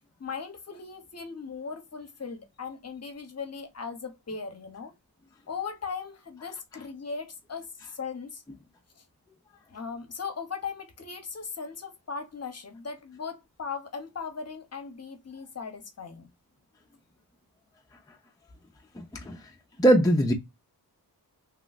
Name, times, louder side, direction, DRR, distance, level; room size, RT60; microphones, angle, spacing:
voice 1, 0.2-4.9 5.5-8.4 9.0-9.1 9.7-16.3, left 5 dB, 40° left, 0.8 m, -38 dB
voice 2, 19.0-19.4 19.8-20.3, right 1 dB, 10° left, 0.5 m, -21 dB
3.1 x 3.0 x 2.3 m
wide cardioid pair, 90°, 38 cm